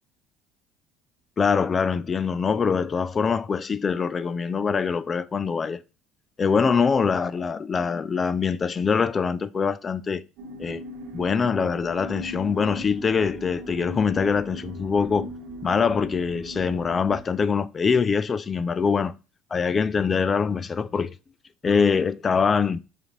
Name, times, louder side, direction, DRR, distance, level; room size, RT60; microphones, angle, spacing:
voice 1, 1.4-5.8 6.4-10.2 10.6-10.8 11.1-15.3 15.6-19.1 19.5-21.1 21.6-22.8, left 5 dB, 35° left, 0.3 m, -23 dB
sound 1, 10.4-17.2, equal, 70° right, 1.2 m, -39 dB
4.9 x 2.5 x 2.9 m
hypercardioid pair, 75°, 0 cm